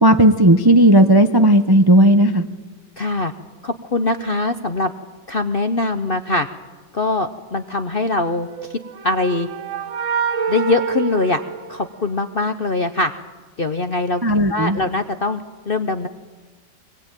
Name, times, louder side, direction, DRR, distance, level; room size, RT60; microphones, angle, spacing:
voice 1, 0.0-2.5 14.2-14.8, right 1 dB, 20° right, 7 dB, 0.6 m, -13 dB
voice 2, 3.0-3.3 3.6-4.9 5.3-6.5 6.9-8.8 9.0-9.5 10.5-11.4 11.7-13.1 13.6-14.2 14.5-16.1, left 2 dB, 45° left, 8 dB, 0.8 m, -22 dB
sound 1, 8.4-12.3, right 6 dB, 50° right, 1.2 m, -26 dB
24.0 x 20.0 x 9.1 m, 1.3 s
omnidirectional pair, 2.0 m